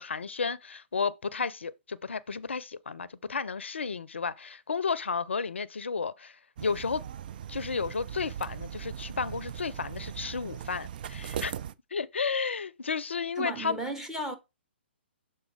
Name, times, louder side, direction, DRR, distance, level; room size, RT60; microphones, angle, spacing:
voice 1, 0.0-7.0 7.5-11.5 11.9-13.8, left 5 dB, 80° left, 0.5 m, -32 dB
sound 1, 6.6-11.7, right 9 dB, 50° right, 0.4 m, -39 dB
voice 2, 13.4-14.4, right 2 dB, 5° right, 1.0 m, -34 dB
7.1 x 4.3 x 3.4 m
figure-of-eight pair, 130°, 6 cm